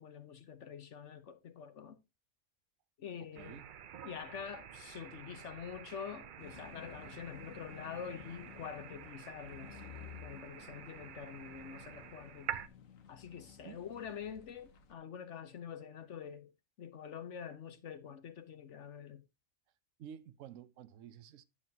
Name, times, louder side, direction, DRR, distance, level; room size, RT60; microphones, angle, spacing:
voice 1, 0.0-2.0 3.0-3.6 4.0-9.8 10.2-12.6 13.1-16.5 16.8-19.2, left 7 dB, 65° left, 1.2 m, -46 dB
voice 2, 3.2-3.7 13.4-13.8 20.0-21.4, right 9 dB, 75° right, 1.0 m, -52 dB
sound 1, 3.3-12.7, right 9 dB, 55° right, 0.5 m, -48 dB
sound 2, 6.4-14.9, left 9 dB, 85° left, 1.3 m, -55 dB
10.0 x 7.4 x 2.7 m
omnidirectional pair, 1.4 m